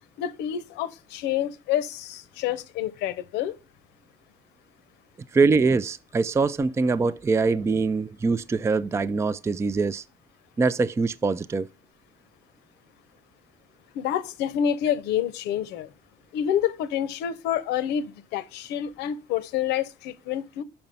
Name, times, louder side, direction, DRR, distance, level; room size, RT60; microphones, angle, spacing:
voice 1, 0.2-3.6 13.9-15.9 16.3-20.6, left 10 dB, 85° left, 0.8 m, -28 dB
voice 2, 5.3-10.0 10.6-11.7, right 4 dB, 15° right, 0.4 m, -23 dB
5.8 x 5.2 x 5.4 m
cardioid pair, 110°, 17 cm